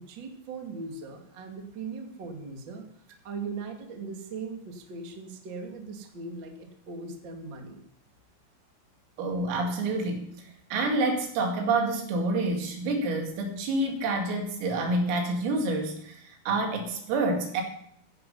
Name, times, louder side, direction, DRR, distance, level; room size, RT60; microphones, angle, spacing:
voice 1, 0.0-2.8 3.2-7.8, right 4 dB, 45° right, 3 dB, 1.5 m, -39 dB
voice 2, 9.2-10.3 10.7-17.6, right 2 dB, 80° right, 3 dB, 5.0 m, -28 dB
16.0 x 13.5 x 5.6 m, 0.73 s
omnidirectional pair, 6.0 m